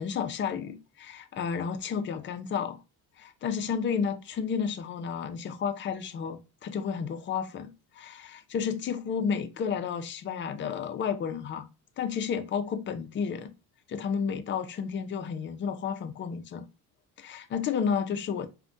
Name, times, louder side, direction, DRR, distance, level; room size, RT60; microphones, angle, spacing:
voice 1, 0.0-2.8 3.2-11.7 12.0-13.5 13.9-16.7 17.2-18.5, left 6 dB, 30° left, 0.4 m, -32 dB
3.2 x 2.1 x 2.6 m
cardioid pair, 115°, 38 cm